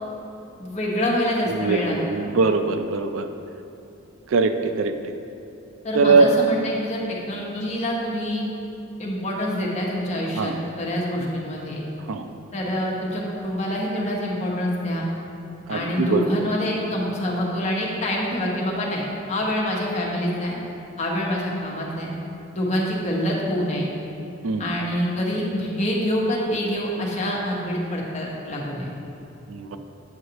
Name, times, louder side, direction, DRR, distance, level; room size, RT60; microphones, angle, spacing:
voice 1, 0.6-2.0 5.8-8.5 9.0-11.8 12.5-15.1 15.7-20.6 21.0-22.1 22.5-23.9 24.6-28.9, equal, 35° left, -3 dB, 1.1 m, -26 dB
voice 2, 1.5-3.3 4.3-5.1 5.9-6.3 10.4-10.6 12.1-12.3 15.7-16.3 24.4-24.7 29.5-29.8, right 4 dB, 85° right, 8 dB, 0.4 m, -21 dB
7.8 x 6.4 x 2.9 m, 2.8 s
head